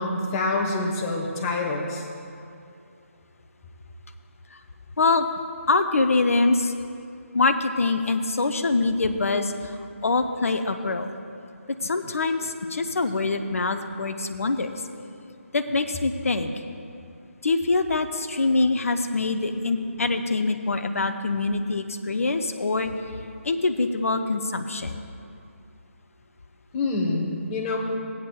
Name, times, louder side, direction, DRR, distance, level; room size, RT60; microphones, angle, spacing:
voice 1, 0.0-2.1 26.7-27.8, left 2 dB, 20° left, -1 dB, 1.2 m, -26 dB
voice 2, 5.0-5.3 5.7-6.7 7.3-9.8 10.0-11.1 11.8-14.8 15.5-16.5 17.4-22.9 23.4-25.0, left 3 dB, 70° left, 7 dB, 0.6 m, -24 dB
17.0 x 8.7 x 2.3 m, 2.5 s
figure-of-eight pair, 150°, 8 cm